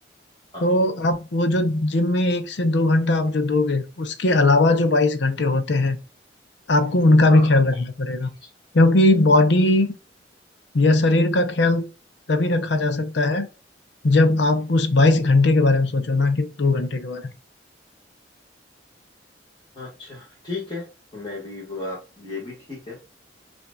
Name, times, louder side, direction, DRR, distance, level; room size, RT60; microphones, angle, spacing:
voice 1, 0.6-6.0 6.7-8.3 8.7-9.9 10.7-11.8 12.3-13.5 14.0-17.2, left 2 dB, 70° left, 0.7 m, -19 dB
voice 2, 19.7-20.9 21.1-23.0, left 3 dB, 25° left, 1.5 m, -34 dB
5.6 x 2.7 x 2.3 m
head